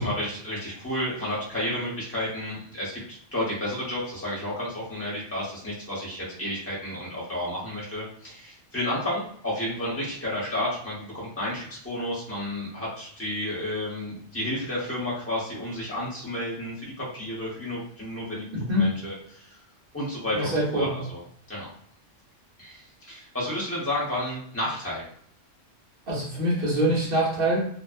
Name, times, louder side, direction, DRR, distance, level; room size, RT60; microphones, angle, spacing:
voice 1, 0.0-19.6 19.9-21.2 21.5-21.7 22.6-25.0, left 1 dB, 10° left, -6 dB, 0.9 m, -31 dB
voice 2, 18.5-18.9 20.3-20.9 26.1-27.7, right 1 dB, 50° right, -6 dB, 1.0 m, -24 dB
2.7 x 2.0 x 2.4 m, 0.63 s
omnidirectional pair, 1.3 m